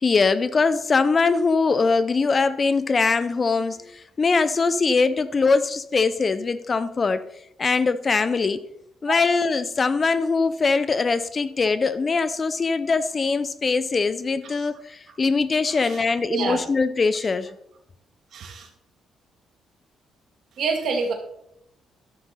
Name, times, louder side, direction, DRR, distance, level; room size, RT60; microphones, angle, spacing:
voice 1, 0.0-7.2 7.6-8.6 9.0-17.5, left 4 dB, 35° left, 0.6 m, -22 dB
voice 2, 15.7-16.0 16.3-16.6 18.3-18.7 20.6-21.1, right 4 dB, 65° right, 1.8 m, -27 dB
11.5 x 6.8 x 4.2 m
cardioid pair, 90°, 0 cm